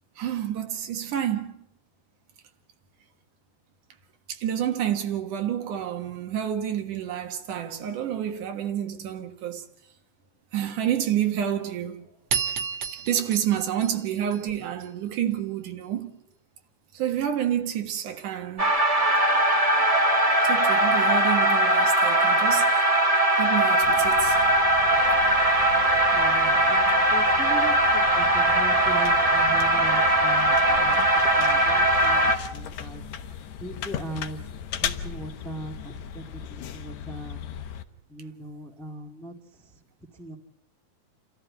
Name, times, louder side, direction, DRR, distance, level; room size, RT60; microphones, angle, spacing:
voice 1, 0.2-1.6 4.3-9.6 10.5-12.0 13.1-16.1 16.9-18.7 20.4-22.9 23.4-24.4, right 10 dB, 80° right, 3.1 m, -29 dB
sound 1, 12.3-14.9, right 6 dB, 55° right, 2.5 m, -31 dB
sound 2, 18.6-32.3, right 1 dB, 30° right, 0.6 m, -20 dB
sound 3, 23.8-37.8, left 8 dB, 65° left, 2.3 m, -37 dB
voice 2, 26.1-31.0 31.4-33.0 33.6-34.4 34.8-37.4 38.1-39.3 40.2-40.4, right 1 dB, ahead, 1.4 m, -39 dB
29.0 x 14.0 x 8.5 m
omnidirectional pair, 3.6 m